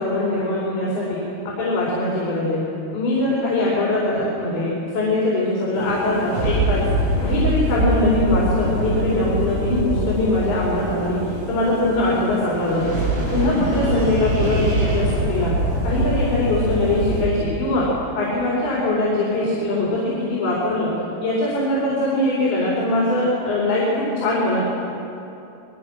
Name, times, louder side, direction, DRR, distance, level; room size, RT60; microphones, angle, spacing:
voice 1, 0.0-2.6 2.9-6.8 7.2-11.2 11.5-13.0 13.3-15.5 15.8-17.9 18.2-20.0 20.3-20.9 21.2-24.6, left 2 dB, 90° left, -6 dB, 6.8 m, -22 dB
sound 1, 5.7-17.2, right 1 dB, 30° right, 7.2 m, -24 dB
28.5 x 21.5 x 6.5 m, 2.8 s
omnidirectional pair, 5.0 m